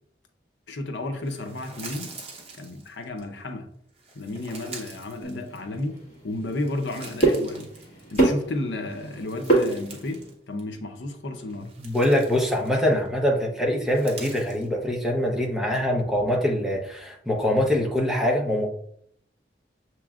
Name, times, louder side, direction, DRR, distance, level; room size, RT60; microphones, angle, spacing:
voice 1, 0.7-2.1 2.6-3.7 4.1-6.0 6.2-7.7 8.1-10.2 10.5-11.7, left 2 dB, 80° left, 6 dB, 0.6 m, -32 dB
sound 1, 1.2-3.2 4.0-6.0 6.4-8.5 8.9-10.3 10.6-10.8 11.4-13.1 13.8-14.7, right 4 dB, 35° right, 0.9 m, -45 dB
sound 2, 5.2-10.3, right 2 dB, 40° left, 1.6 m, -27 dB
voice 2, 11.8-18.7, left 1 dB, ahead, -1 dB, 0.7 m, -24 dB
6.8 x 3.0 x 2.4 m, 0.67 s
head